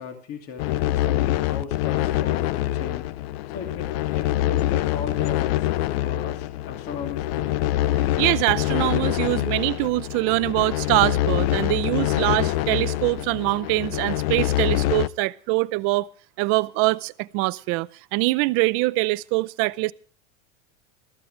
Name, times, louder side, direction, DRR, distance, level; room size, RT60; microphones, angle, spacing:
voice 1, 0.0-3.0 3.5-5.7 5.9-7.6, left 6 dB, 40° left, 2.7 m, -37 dB
sound 1, 0.6-15.1, left 14 dB, 55° left, 0.6 m, -25 dB
voice 2, 8.2-16.1 16.4-19.9, right 22 dB, 40° right, 0.6 m, -23 dB
21.5 x 14.5 x 3.3 m
supercardioid pair, 145°, 36 cm